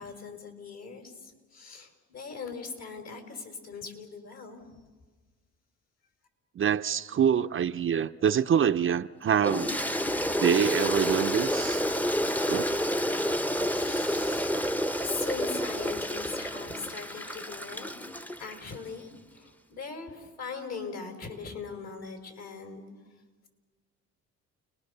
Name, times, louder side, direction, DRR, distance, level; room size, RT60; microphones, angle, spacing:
voice 1, 0.0-4.6 13.8-17.9 18.4-22.8, left 5 dB, 60° left, 5.2 m, -40 dB
voice 2, 6.6-9.7 10.4-11.8 12.5-12.7, right 8 dB, 45° right, 0.6 m, -25 dB
Toilet flush, 9.4-18.8, equal, 5° left, 0.8 m, -29 dB
29.5 x 21.0 x 6.8 m
cardioid pair, 90°, 30 cm